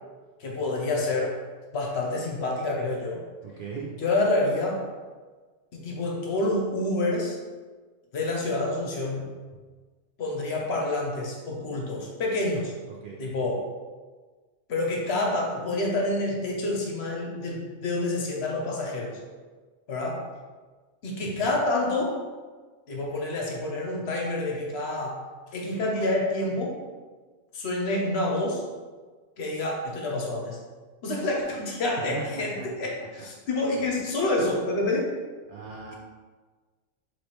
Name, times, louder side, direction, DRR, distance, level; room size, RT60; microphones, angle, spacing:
voice 1, 0.4-1.4 1.7-3.2 4.0-4.9 5.7-7.4 8.1-9.3 10.2-12.7 13.2-13.7 14.7-19.2 19.9-20.3 21.0-22.2 22.9-25.2 25.5-26.8 27.5-28.6 29.4-30.6 31.0-35.2, left 2 dB, 60° left, -1 dB, 1.0 m, -28 dB
voice 2, 3.4-3.9 12.9-13.2 21.2-21.5 32.1-32.7 35.5-35.9, right 4 dB, 60° right, -3 dB, 0.5 m, -38 dB
3.2 x 3.1 x 4.2 m, 1.4 s
omnidirectional pair, 1.3 m